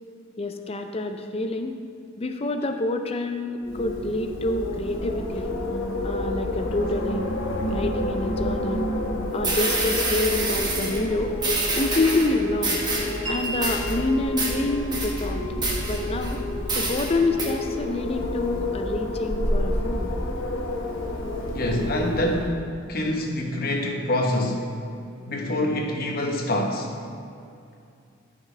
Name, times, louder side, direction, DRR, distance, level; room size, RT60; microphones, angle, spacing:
voice 1, 0.4-1.8 2.2-5.6 6.0-7.3 7.7-9.0 9.3-11.3 11.7-12.8 13.3-15.4 15.9-16.4 16.8-20.1, left 2 dB, 30° left, 6 dB, 0.5 m, -27 dB
Wind, 3.6-22.6, left 1 dB, 70° left, 1.1 m, -29 dB
sound 1, 9.1-9.2 9.4-11.0 11.4-12.3 12.6-13.2 13.4-13.9 14.4-14.5 14.9-15.2 15.6-16.3 16.7-17.1 17.4-17.5, right 3 dB, 20° right, 1.3 m, -27 dB
Wind chime, 13.2-20.9, equal, 60° right, 2.4 m, -40 dB
voice 2, 21.5-22.6 22.9-24.6 25.3-26.9, left 1 dB, 50° left, 1 dB, 1.1 m, -25 dB
14.0 x 5.8 x 3.3 m, 2.4 s
head